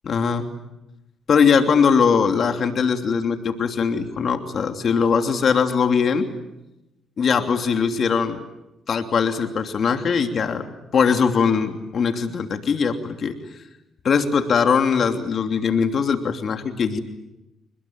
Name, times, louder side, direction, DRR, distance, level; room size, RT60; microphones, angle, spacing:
voice 1, 0.0-0.5 1.3-6.3 7.2-8.4 8.9-10.6 10.9-13.3 14.0-17.0, left 6 dB, 55° left, 6 dB, 3.0 m, -20 dB
29.0 x 21.0 x 9.4 m, 0.93 s
cardioid pair, 90°, 0 cm